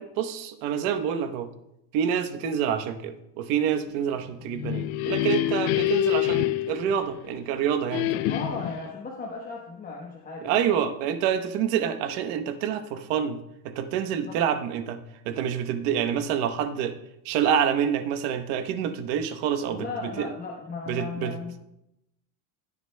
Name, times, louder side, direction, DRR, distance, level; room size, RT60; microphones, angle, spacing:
voice 1, 0.0-1.5 1.9-8.1 10.4-13.4 13.6-15.0 15.2-17.0 17.2-19.9 20.2-20.3 20.9-21.3, right 8 dB, 90° right, 8 dB, 1.1 m, -27 dB
sound 1, 4.4-7.4 7.9-8.9, left 15 dB, 80° left, 0.7 m, -27 dB
voice 2, 8.3-10.7 14.2-14.4 19.6-21.6, left 4 dB, 20° left, -2 dB, 1.0 m, -36 dB
16.5 x 9.6 x 2.2 m, 0.86 s
cardioid pair, 170°, 43 cm